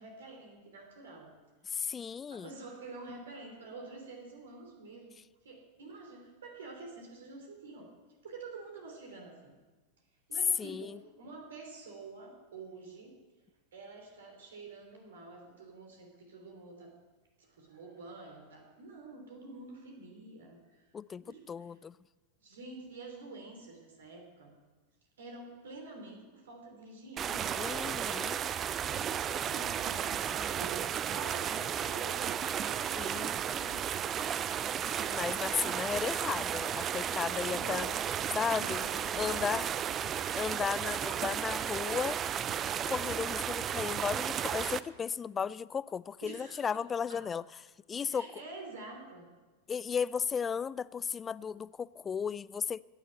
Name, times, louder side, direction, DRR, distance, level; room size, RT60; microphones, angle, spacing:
voice 1, 0.0-1.3 2.3-5.1 5.4-7.9 8.2-9.5 10.3-13.2 13.7-17.0 17.4-20.8 21.2-21.8 22.4-24.6 25.2-27.5 29.3-33.8 37.4-39.4 46.2-46.8 47.1-47.3 48.0-49.3, right 3 dB, 75° right, 3.2 m, -48 dB
voice 2, 1.7-2.5 10.6-11.0 20.9-22.0 27.6-28.4 33.0-33.3 35.1-37.9 38.3-38.9 39.2-39.7 40.3-42.2 42.9-47.4 47.9-48.3 49.7-52.8, left 6 dB, 25° left, 0.4 m, -35 dB
sound 1, 27.2-44.8, right 9 dB, 30° right, 0.6 m, -34 dB
sound 2, 38.4-43.7, right 7 dB, 50° right, 1.8 m, -60 dB
16.5 x 9.2 x 8.0 m
hypercardioid pair, 90°, 0 cm